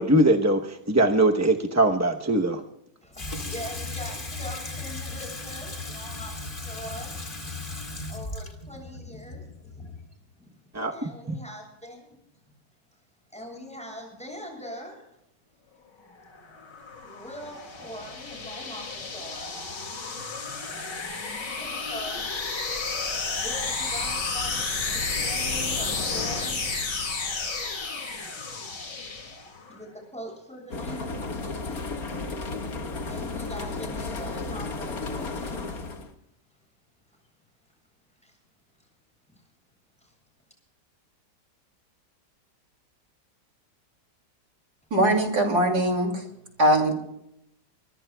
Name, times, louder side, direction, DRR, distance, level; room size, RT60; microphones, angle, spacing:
voice 1, 0.0-2.6 10.7-10.9, right 1 dB, 15° right, 3 dB, 0.6 m, -21 dB
voice 2, 3.0-6.3 6.6-7.2 8.1-9.5 9.7-9.9 10.4-10.5 10.9-12.2 13.3-15.1 17.0-19.6 21.1-21.2 21.5-22.3 23.3-26.6 29.1-29.3 29.7-31.2 33.1-35.6 38.2-38.4 40.0-40.1, equal, 5° left, 0 dB, 8.0 m, -41 dB
Water tap faucet / Sink (filling or washing), 3.1-10.2, left 2 dB, 30° left, 2.2 m, -36 dB
sound 1, 16.3-29.7, left 4 dB, 80° left, 3.1 m, -32 dB
sound 2, 30.7-36.1, left 3 dB, 55° left, 2.2 m, -33 dB
voice 3, 44.9-46.3 46.6-46.9, right 1 dB, 65° right, 2 dB, 3.4 m, -21 dB
23.5 x 23.0 x 2.3 m, 0.79 s
omnidirectional pair, 1.9 m